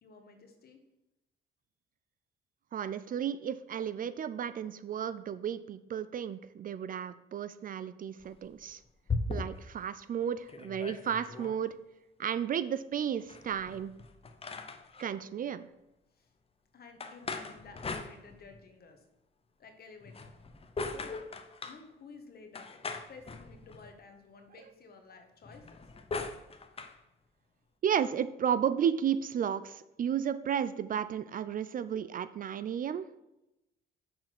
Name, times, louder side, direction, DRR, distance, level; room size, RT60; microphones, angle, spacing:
voice 1, 0.0-0.8 16.2-16.3 16.7-19.0 19.6-20.3 20.9-21.2 21.6-22.8 23.1-25.9, left 4 dB, 50° left, 5 dB, 1.4 m, -53 dB
voice 2, 2.7-8.8 9.3-11.7 12.2-13.9 15.0-15.7 27.8-33.1, right 8 dB, 45° right, 14 dB, 0.4 m, -33 dB
sound 1, 8.2-9.8 10.2-10.3 10.5-11.6 13.2-15.1 17.0-18.7 20.0-21.8 22.5-24.0 25.4-27.0, left 3 dB, 30° left, 0.7 m, -40 dB
6.5 x 4.2 x 5.9 m, 0.91 s
cardioid pair, 90°, 20 cm